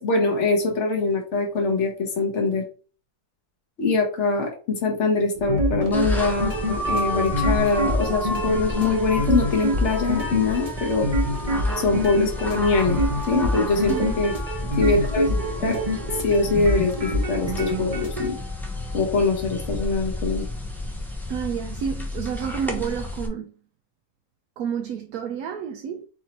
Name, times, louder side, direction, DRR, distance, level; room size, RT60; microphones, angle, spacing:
voice 1, 0.0-2.6 3.8-11.1 11.8-13.0 13.3-14.3 14.8-15.8 16.2-18.4 18.9-20.5, left 3 dB, 50° left, 1.5 m, -23 dB
sound 1, 5.4-18.3, equal, 30° right, 1.0 m, -26 dB
sound 2, 5.9-23.3, left 2 dB, ahead, 0.5 m, -31 dB
voice 2, 21.3-23.5 24.6-26.0, right 8 dB, 75° right, 1.1 m, -29 dB
4.1 x 2.8 x 4.2 m
omnidirectional pair, 1.6 m